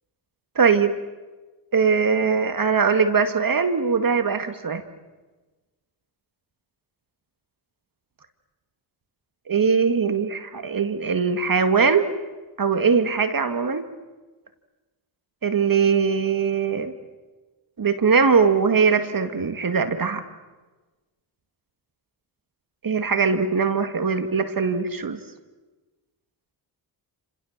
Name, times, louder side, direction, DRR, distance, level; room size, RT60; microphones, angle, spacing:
voice 1, 0.6-1.0 1.7-4.8 9.5-12.1 12.6-13.9 15.4-16.9 17.8-20.2 22.8-25.2, right 5 dB, 45° right, 9 dB, 2.1 m, -21 dB
29.5 x 27.0 x 7.4 m, 1.2 s
cardioid pair, 70°, 47 cm